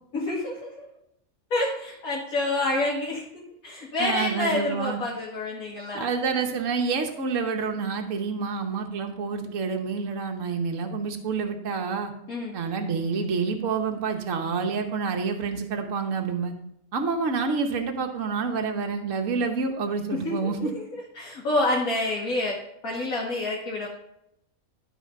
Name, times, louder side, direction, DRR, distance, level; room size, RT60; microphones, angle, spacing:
voice 1, 0.1-0.9 1.5-6.1 12.3-12.6 20.1-20.4 20.7-23.9, left 2 dB, 80° left, -5 dB, 2.1 m, -28 dB
voice 2, 4.0-5.0 5.9-12.1 12.5-16.5 16.9-20.7, right 5 dB, 60° right, 4 dB, 1.4 m, -28 dB
11.5 x 4.5 x 5.1 m, 0.79 s
omnidirectional pair, 1.5 m